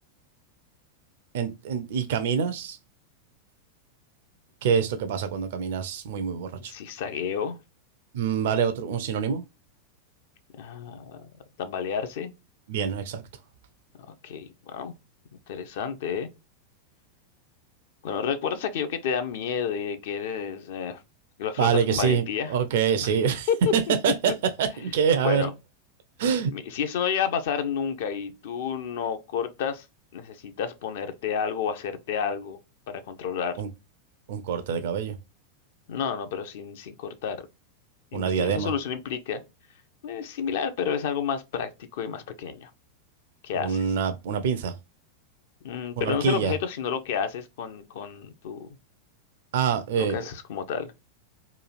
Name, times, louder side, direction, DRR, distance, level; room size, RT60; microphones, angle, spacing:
voice 1, 1.3-2.8 4.6-6.7 8.1-9.4 12.7-13.2 21.6-24.3 24.6-25.5 26.2-26.5 33.6-33.7 34.3-35.2 38.1-38.7 43.6-44.7 46.0-46.5 49.5-50.2, right 7 dB, 55° right, 0.4 m, -25 dB
voice 2, 6.6-7.6 10.6-11.3 11.6-12.3 14.2-14.9 15.5-16.3 18.0-21.0 21.4-22.5 23.0-23.1 23.5-23.7 25.2-25.5 26.5-29.8 30.1-32.6 32.9-33.6 35.9-37.5 38.1-39.4 40.0-42.7 43.4-43.9 45.6-48.7 50.0-50.9, left 7 dB, 55° left, 0.5 m, -30 dB
3.0 x 2.3 x 2.4 m
figure-of-eight pair, 90°, 0 cm